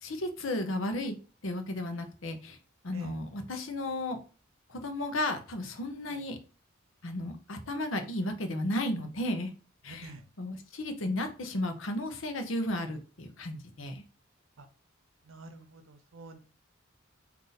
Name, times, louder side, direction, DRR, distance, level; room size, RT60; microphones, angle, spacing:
voice 1, 0.0-1.1 1.4-2.6 2.8-4.2 4.7-6.4 7.0-9.5 9.8-10.1 10.4-14.0, left 1 dB, 75° left, 7 dB, 0.8 m, -34 dB
voice 2, 9.9-10.2 14.6-14.7 15.3-16.4, right 2 dB, 80° right, 8 dB, 0.7 m, -47 dB
3.9 x 2.8 x 4.0 m, 0.38 s
head